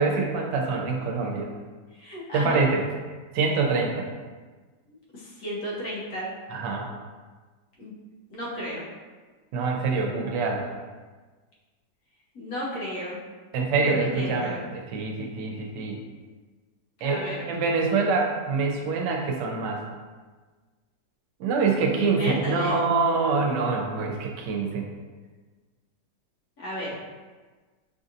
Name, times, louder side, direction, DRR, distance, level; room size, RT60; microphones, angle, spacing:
voice 1, 0.0-1.5 2.3-2.8 3.3-4.1 6.5-6.9 9.5-10.6 13.5-16.0 17.0-19.8 21.4-24.9, right 4 dB, 85° right, 1 dB, 1.3 m, -25 dB
voice 2, 2.0-2.7 3.7-3.9 5.1-6.3 7.8-7.9 8.3-8.9 12.3-13.2 13.7-14.6 17.0-17.5 22.2-22.8 26.6-26.9, equal, 65° left, -6 dB, 1.4 m, -34 dB
5.4 x 2.7 x 2.5 m, 1.4 s
omnidirectional pair, 1.9 m